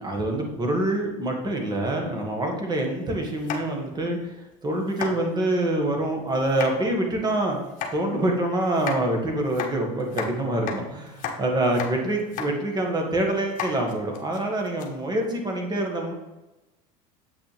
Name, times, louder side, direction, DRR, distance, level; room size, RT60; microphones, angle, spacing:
voice 1, 0.0-4.3 4.6-7.6 7.9-16.1, right 1 dB, 20° right, 1 dB, 1.9 m, -26 dB
sound 1, 3.4-4.0 4.4-4.5 4.9-5.1 6.4-6.7 7.6-7.9 8.7-9.0 9.5-10.3 10.7-10.8 11.1-11.4 11.6-11.9 12.2-12.5 12.9-13.0 13.5-14.9, left 7 dB, 45° left, 1.4 m, -33 dB
8.1 x 5.9 x 3.4 m, 1.0 s
supercardioid pair, 110°, 19 cm